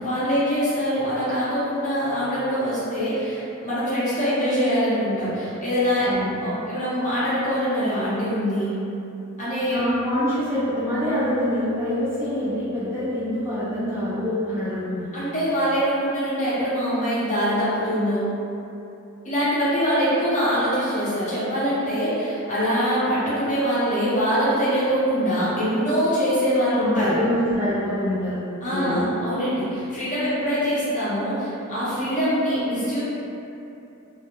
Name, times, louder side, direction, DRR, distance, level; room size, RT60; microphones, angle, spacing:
voice 1, 0.0-8.7 9.4-9.8 15.1-18.3 19.2-27.2 28.6-33.0, equal, 35° left, -11 dB, 0.7 m, -23 dB
voice 2, 6.0-6.4 9.7-15.2 26.8-28.4 28.7-29.0, left 1 dB, 10° right, -12 dB, 0.4 m, -25 dB
2.1 x 2.0 x 2.9 m, 2.8 s
head